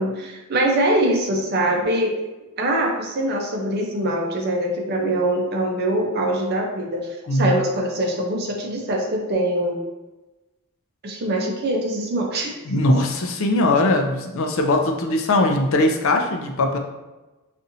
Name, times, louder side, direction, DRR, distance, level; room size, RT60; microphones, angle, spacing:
voice 1, 0.0-2.1 2.6-9.8 11.0-12.6, right 1 dB, 45° right, 1 dB, 0.6 m, -23 dB
voice 2, 12.7-16.8, left 2 dB, 65° left, 4 dB, 0.5 m, -20 dB
4.1 x 2.5 x 2.6 m, 1.1 s
head